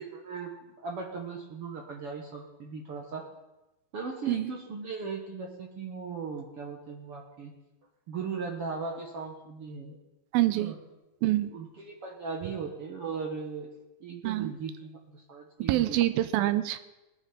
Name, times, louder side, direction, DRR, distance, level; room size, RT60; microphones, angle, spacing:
voice 1, 0.0-3.2 3.9-7.5 8.1-10.0 10.5-10.8 11.5-13.7 14.0-16.0, right 5 dB, 55° right, 0 dB, 1.6 m, -38 dB
voice 2, 10.3-10.7 11.2-11.5 14.2-14.5 15.7-16.8, right 15 dB, 85° right, 11 dB, 2.5 m, -26 dB
19.5 x 9.2 x 4.4 m, 1.0 s
omnidirectional pair, 4.3 m